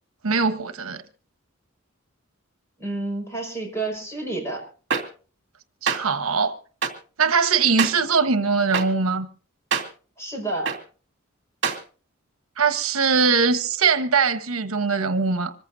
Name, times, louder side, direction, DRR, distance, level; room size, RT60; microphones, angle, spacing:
voice 1, 0.2-1.0 5.8-6.5 7.2-9.3 12.6-15.5, right 5 dB, 80° right, 1.1 m, -21 dB
voice 2, 2.8-4.7 10.2-10.7, right 2 dB, 15° left, 5.4 m, -29 dB
sound 1, 4.9-5.0 5.9-6.0 6.8-6.9 7.8-7.9 8.7-8.8 9.7-9.8 10.7-10.8 11.6-11.8, right 6 dB, 55° right, 2.3 m, -23 dB
26.0 x 15.0 x 2.7 m
head